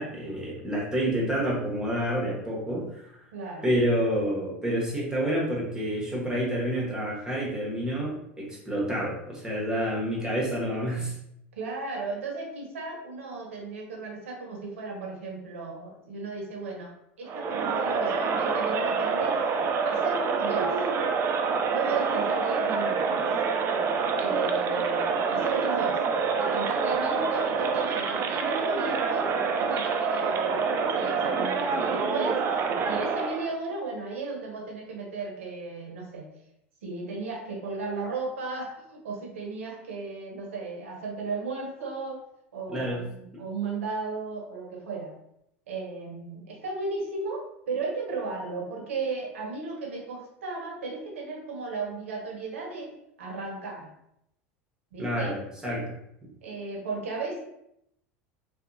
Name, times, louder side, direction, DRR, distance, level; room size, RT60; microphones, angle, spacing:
voice 1, 0.0-3.2 3.6-11.1 42.7-43.0 43.3-43.4 55.0-55.4 55.6-55.9, equal, 10° right, -4 dB, 1.1 m, -28 dB
voice 2, 3.3-3.7 11.6-16.9 17.2-19.5 19.8-20.8 21.7-23.2 24.2-26.0 26.4-29.3 29.6-30.7 30.9-32.4 32.8-36.3 36.8-42.2 42.5-45.1 45.7-53.9 54.9-55.4 56.4-57.4, right 4 dB, 85° right, 1 dB, 0.7 m, -35 dB
Crowd, 17.3-33.6, right 5 dB, 40° right, 0.4 m, -27 dB
2.7 x 2.2 x 2.5 m, 0.77 s
hypercardioid pair, 90°, 7 cm